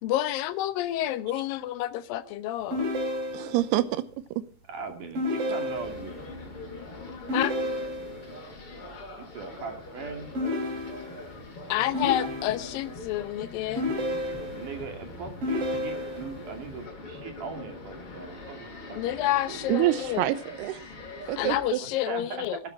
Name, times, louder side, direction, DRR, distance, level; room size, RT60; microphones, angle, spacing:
voice 1, 0.0-2.9 7.3-7.6 11.7-13.9 18.9-20.3 21.4-22.6, left 13 dB, 75° left, 12 dB, 2.2 m, -29 dB
sound 1, 2.7-3.7 5.2-6.2 7.3-8.3 10.4-11.4 11.9-12.9 13.8-14.8 15.4-16.4, left 1 dB, 35° right, 3.7 m, -31 dB
voice 2, 3.3-4.0 4.4-4.5 19.7-20.8 21.3-21.8, right 15 dB, 75° right, 14 dB, 2.8 m, -26 dB
voice 3, 4.7-6.2 6.7-6.8 9.2-10.3 14.5-19.7 21.8-22.4, right 5 dB, 50° right, 5 dB, 3.8 m, -40 dB
sound 2, 5.7-21.7, left 2 dB, 30° left, 7.4 m, -43 dB
19.5 x 13.0 x 4.5 m, 0.39 s
omnidirectional pair, 5.1 m